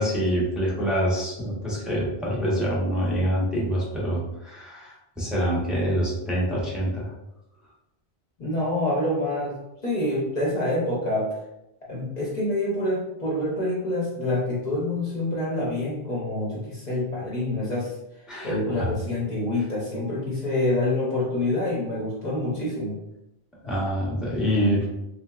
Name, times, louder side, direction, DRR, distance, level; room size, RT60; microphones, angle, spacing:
voice 1, 0.0-7.1 18.3-18.9 23.6-24.9, equal, ahead, -6 dB, 0.7 m, -26 dB
voice 2, 8.4-11.4 11.9-18.0 18.4-23.0, left 1 dB, 45° left, -6 dB, 0.8 m, -26 dB
3.5 x 2.8 x 2.4 m, 0.89 s
omnidirectional pair, 1.1 m